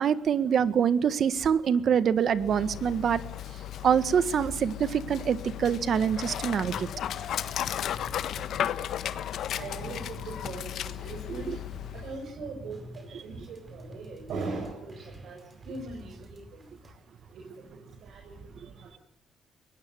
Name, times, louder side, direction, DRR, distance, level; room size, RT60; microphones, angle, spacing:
voice 1, 0.0-3.2 3.8-6.9 11.5-11.6, right 8 dB, 60° right, 14 dB, 1.6 m, -25 dB
Dog, 2.3-12.3, left 10 dB, 70° left, 1.4 m, -35 dB
sound 1, 5.9-16.9, equal, 25° right, 5.0 m, -50 dB
voice 2, 8.6-9.1 9.5-11.5 11.9-12.9 13.2-15.4 15.7-16.4 17.3-17.5 18.0-18.3, right 3 dB, 75° right, 1 dB, 6.4 m, -39 dB
23.0 x 19.0 x 9.5 m, 0.80 s
cardioid pair, 90°, 0 cm